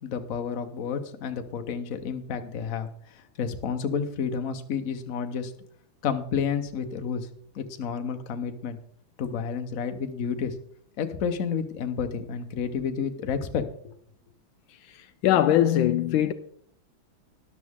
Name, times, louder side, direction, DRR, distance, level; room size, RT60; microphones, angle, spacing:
voice 1, 0.0-2.9 3.4-5.5 6.0-7.3 7.5-8.8 9.2-10.5 11.0-13.6, left 6 dB, 50° left, 1.1 m, -30 dB
voice 2, 14.8-16.3, left 11 dB, 80° left, 1.3 m, -22 dB
12.5 x 11.0 x 3.6 m
omnidirectional pair, 2.2 m